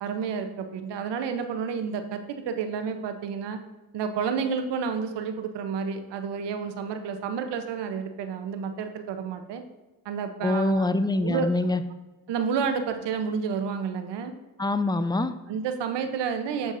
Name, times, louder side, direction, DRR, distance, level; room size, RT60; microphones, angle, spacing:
voice 1, 0.0-3.6 3.9-9.6 10.0-10.9 11.1-11.5 12.3-14.3 15.5-16.7, right 6 dB, 85° right, 8 dB, 0.7 m, -30 dB
voice 2, 10.4-11.8 14.6-15.3, left 2 dB, 10° left, 11 dB, 0.5 m, -24 dB
7.1 x 6.9 x 2.6 m, 1.1 s
supercardioid pair, 50°, 41 cm